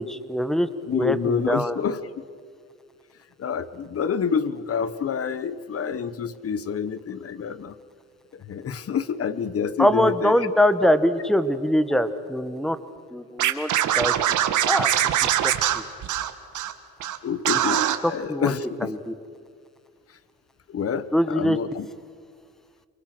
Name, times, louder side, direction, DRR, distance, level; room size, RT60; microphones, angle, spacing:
voice 1, 0.0-1.8 9.8-12.8 13.1-14.1 14.7-14.9 18.0-18.5 18.8-19.1 21.1-21.6, equal, ahead, 12 dB, 1.5 m, -23 dB
voice 2, 0.9-2.0 3.4-7.7 8.3-10.4 17.2-18.9 20.7-21.9, left 7 dB, 50° left, 15 dB, 1.3 m, -28 dB
Scratching (performance technique), 13.4-16.7 17.0-17.2 17.4-18.0, right 11 dB, 75° right, 1.8 m, -22 dB
28.0 x 24.5 x 6.2 m, 2.1 s
cardioid pair, 90°, 30 cm